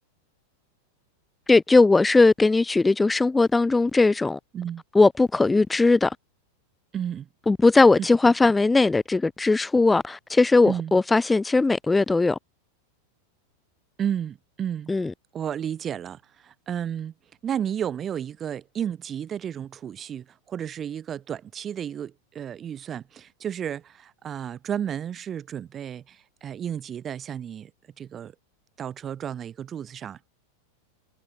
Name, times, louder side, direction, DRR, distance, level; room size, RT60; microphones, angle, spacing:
voice 1, 1.5-4.4 4.9-6.2 7.5-12.4 14.9-15.1, left 3 dB, 10° left, 0.3 m, -19 dB
voice 2, 6.9-7.3 8.0-8.1 10.7-10.9 14.0-14.9 15.3-17.1 17.4-27.7 28.0-28.3 28.8-30.3, right 9 dB, 25° right, 0.8 m, -32 dB
figure-of-eight pair, 90°, 0 cm